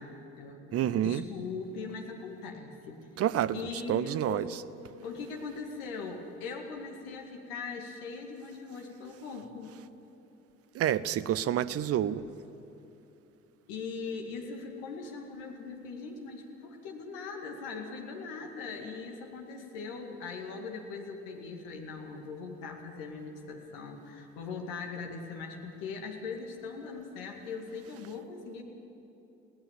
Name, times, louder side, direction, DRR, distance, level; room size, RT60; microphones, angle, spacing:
voice 1, 0.0-3.1 3.5-4.5 5.0-9.8 13.7-28.6, left 4 dB, 60° left, 2 dB, 2.2 m, -40 dB
voice 2, 0.7-1.3 3.2-4.5 10.7-12.2, right 11 dB, 35° right, 17 dB, 0.7 m, -28 dB
21.5 x 17.0 x 7.1 m, 3.0 s
figure-of-eight pair, 55°, 41 cm